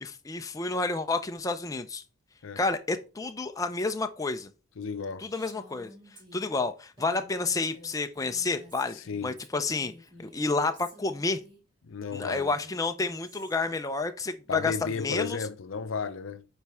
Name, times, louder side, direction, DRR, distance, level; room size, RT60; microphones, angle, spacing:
voice 1, 0.0-2.0 2.6-4.5 5.2-5.9 6.3-9.0 9.2-9.9 10.2-11.4 12.1-15.4, left 3 dB, 15° left, 0.4 m, -30 dB
voice 2, 4.8-5.3 8.9-9.4 11.8-12.5 14.5-16.5, left 5 dB, 85° left, 0.6 m, -34 dB
Female speech woman speaking, 5.2-11.6 12.4-13.8, equal, 25° right, 2.1 m, -52 dB
9.1 x 4.3 x 3.5 m
head